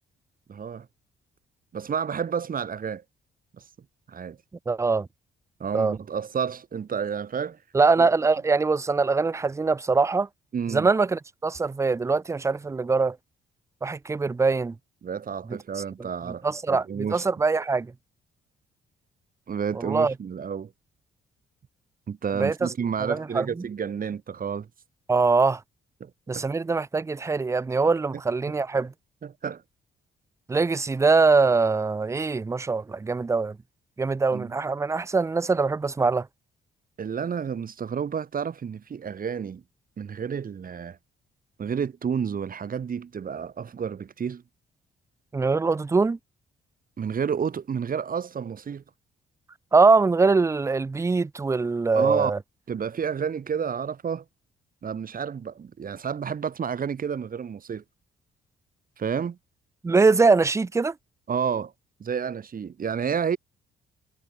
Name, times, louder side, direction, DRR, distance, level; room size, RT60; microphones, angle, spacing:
voice 1, 0.5-0.9 1.7-3.0 4.1-4.4 5.6-7.6 8.0-8.1 10.5-10.9 15.0-17.2 19.5-20.7 22.1-24.7 26.0-26.5 28.5-28.8 29.2-29.6 34.3-34.6 37.0-39.6 40.0-41.0 41.6-44.4 47.0-48.8 51.9-52.3 52.7-54.2 54.8-57.8 59.0-59.4 61.3-61.7 62.0-63.4, right 7 dB, 45° right, 2.6 m, -30 dB
voice 2, 4.7-5.1 5.7-6.0 7.7-10.3 10.7-13.2 13.8-14.7 15.5-15.6 16.4-17.9 19.8-20.1 22.4-22.7 23.0-23.6 25.1-25.6 26.3-28.9 30.5-33.6 34.0-36.3 45.3-46.2 49.7-52.4 59.8-60.9, right 4 dB, 15° right, 0.4 m, -23 dB
cardioid pair, 90°, 20 cm